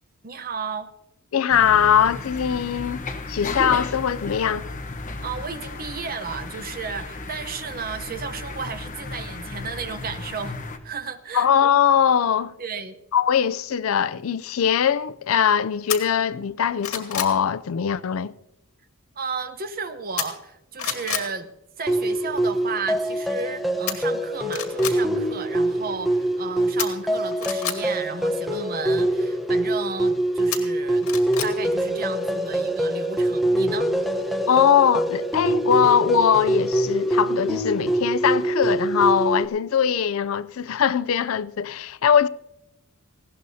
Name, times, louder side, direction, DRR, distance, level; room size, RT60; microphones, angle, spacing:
voice 1, 0.2-0.9 5.2-10.6 10.8-11.5 12.6-12.9 19.1-21.5 21.8-31.1 31.4-33.9, right 5 dB, 45° right, 0.8 m, -33 dB
voice 2, 1.3-4.7 11.3-12.5 13.1-18.3 34.5-42.3, left 8 dB, 65° left, 0.4 m, -21 dB
sound 1, 1.5-10.8, left 3 dB, 35° left, 1.1 m, -34 dB
sound 2, 15.9-16.0 16.5-17.4 20.2-20.5 20.8-21.3 23.9-24.0 24.5-25.0 26.8-27.8 30.5-31.5 31.9-32.0, left 9 dB, 90° left, 2.1 m, -28 dB
sound 3, 21.9-39.5, right 1 dB, ahead, 0.9 m, -24 dB
19.0 x 16.5 x 2.7 m
head